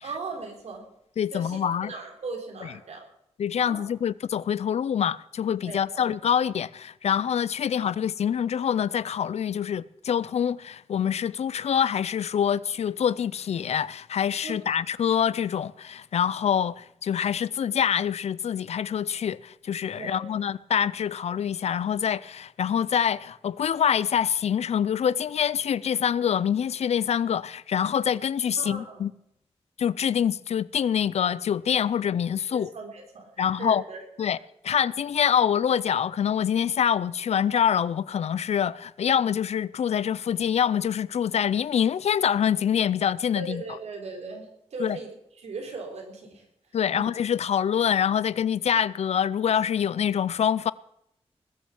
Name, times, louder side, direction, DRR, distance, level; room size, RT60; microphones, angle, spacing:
voice 1, 0.0-0.9 1.3-3.0 3.6-3.9 5.7-6.1 14.4-14.5 19.9-20.2 28.6-29.0 32.5-34.0 43.4-45.1 45.4-46.4 46.9-47.1, right 3 dB, 85° right, 3.6 m, -38 dB
voice 2, 1.2-1.9 2.6-2.7 3.4-29.1 29.8-32.7 33.4-33.8 34.2-34.4 34.6-43.6 44.8-45.0 46.7-50.7, left 8 dB, 75° left, 0.5 m, -25 dB
20.5 x 7.4 x 7.1 m
wide cardioid pair, 135°, 11 cm